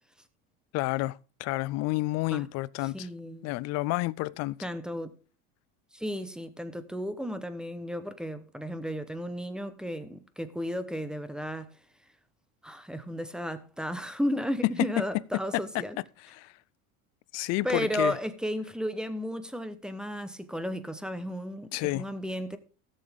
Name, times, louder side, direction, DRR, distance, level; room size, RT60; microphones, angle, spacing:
voice 1, 0.7-3.1 3.4-4.6 15.5-15.6 16.3-16.5 17.3-18.2 21.7-22.1, left 19 dB, 40° left, 0.4 m, -30 dB
voice 2, 2.9-3.5 4.6-5.1 5.9-11.7 12.6-16.0 17.6-22.6, equal, ahead, 0.9 m, -34 dB
16.0 x 7.0 x 3.6 m
supercardioid pair, 115°, 44 cm